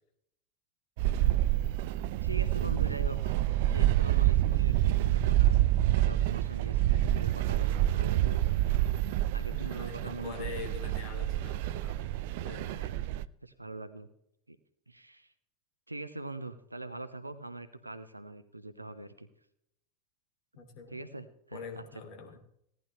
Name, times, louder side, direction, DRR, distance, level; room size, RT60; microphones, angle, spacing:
sound 1, 1.0-13.3, right 14 dB, 55° right, 0.4 m, -27 dB
voice 1, 2.2-3.4 3.7-8.5 9.3-10.7 12.6-14.1 14.5-14.6 14.9-15.3 15.9-19.3 20.9-21.8, right 2 dB, 90° right, 11 dB, 0.9 m, -43 dB
voice 2, 9.5-13.0 20.6-21.2 21.5-22.4, left 6 dB, 45° left, 5 dB, 2.8 m, -45 dB
17.5 x 10.5 x 3.3 m, 0.73 s
figure-of-eight pair, 85°, 0 cm